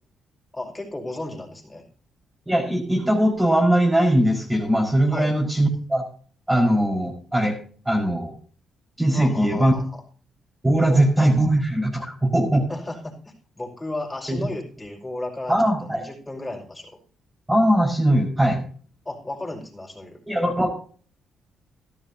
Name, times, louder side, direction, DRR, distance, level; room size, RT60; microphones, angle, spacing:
voice 1, 0.5-1.8 5.1-5.3 9.1-10.0 10.9-11.1 12.7-16.9 19.0-20.2, left 2 dB, 15° left, 1 dB, 5.7 m, -34 dB
voice 2, 2.5-6.0 6.5-7.6 7.9-8.3 9.0-9.7 10.6-12.7 14.3-14.4 15.5-16.1 17.5-18.6 20.3-20.7, right 1 dB, 10° right, 2 dB, 5.1 m, -20 dB
15.5 x 12.5 x 2.8 m, 0.43 s
cardioid pair, 90°, 0 cm